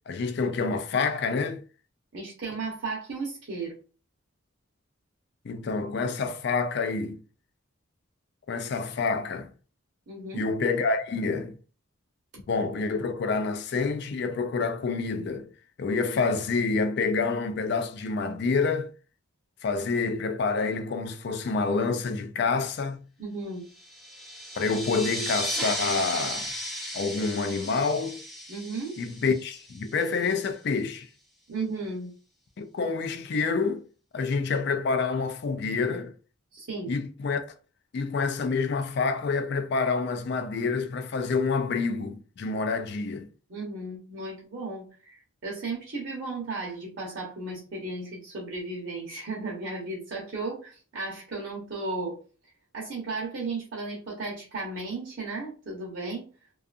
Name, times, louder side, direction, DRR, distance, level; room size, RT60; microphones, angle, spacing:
voice 1, 0.1-1.6 5.4-7.2 8.5-9.5 10.3-11.6 12.5-15.5 15.8-18.9 19.6-23.0 24.6-26.5 26.9-28.2 29.0-31.1 32.6-33.8 34.1-36.1 36.9-37.4 37.9-43.3, left 4 dB, 50° left, 0.3 m, -27 dB
voice 2, 2.1-3.7 10.1-10.5 23.2-23.6 28.5-29.0 31.5-32.1 36.5-36.9 43.5-52.2 52.7-56.2, right 3 dB, 55° right, 0.8 m, -35 dB
sound 1, 23.8-30.0, equal, ahead, 0.5 m, -35 dB
2.6 x 2.3 x 2.4 m
head